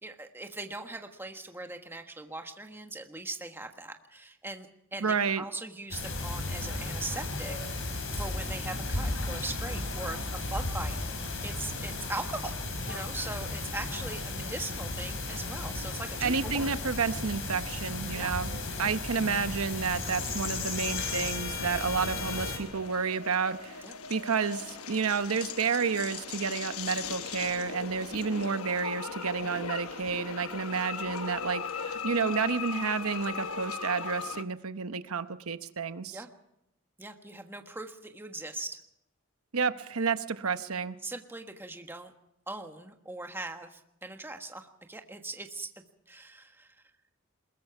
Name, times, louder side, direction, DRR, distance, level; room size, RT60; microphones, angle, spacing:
voice 1, 0.0-7.6 7.9-12.5 12.8-16.7 18.1-18.3 18.8-18.9 23.8-24.0 36.1-36.3 37.0-38.8 41.0-42.1 42.5-46.8, right 2 dB, 10° right, 5 dB, 1.3 m, -40 dB
voice 2, 5.0-5.4 16.2-23.8 24.1-36.2 39.5-40.9, right 5 dB, 85° right, 11 dB, 0.9 m, -30 dB
sound 1, 5.9-22.6, left 2 dB, 65° left, 4.7 m, -34 dB
sound 2, 20.0-34.4, left 6 dB, 85° left, 1.1 m, -39 dB
22.5 x 21.0 x 5.9 m, 0.84 s
head